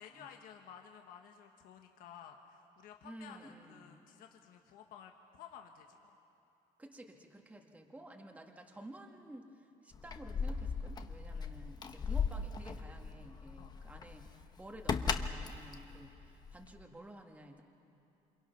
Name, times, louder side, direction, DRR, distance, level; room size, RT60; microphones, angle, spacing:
voice 1, 0.0-6.1 11.3-11.4 13.6-13.8, left 8 dB, 75° left, 4 dB, 1.4 m, -54 dB
voice 2, 3.0-4.0 6.8-17.6, right 1 dB, 10° right, 2 dB, 1.6 m, -52 dB
Keys jangling, 9.9-16.9, left 5 dB, 30° left, 0.9 m, -38 dB
28.0 x 27.0 x 5.8 m, 2.8 s
cardioid pair, 145°, 15 cm